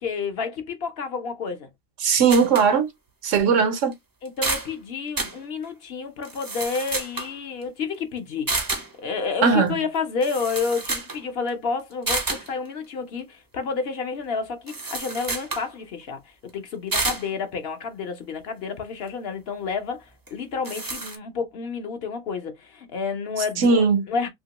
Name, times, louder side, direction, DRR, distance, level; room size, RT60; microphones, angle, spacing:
voice 1, 0.0-1.7 4.2-16.2 16.5-24.3, left 5 dB, 60° left, 0.8 m, -30 dB
voice 2, 2.0-2.9 3.2-3.9 9.4-9.8 23.6-24.1, right 5 dB, 85° right, 1.1 m, -19 dB
sound 1, 2.3-2.7 3.3-3.4 3.9-4.0 4.3-4.7 5.2-5.4 6.2-7.3 8.5-8.9 10.0-10.1 10.2-11.2 11.5-11.6 12.1-12.5 14.7-15.7 16.9-17.3 20.3-20.4 20.6-21.2, right 3 dB, 30° right, 0.4 m, -29 dB
2.9 x 2.8 x 2.8 m
omnidirectional pair, 1.3 m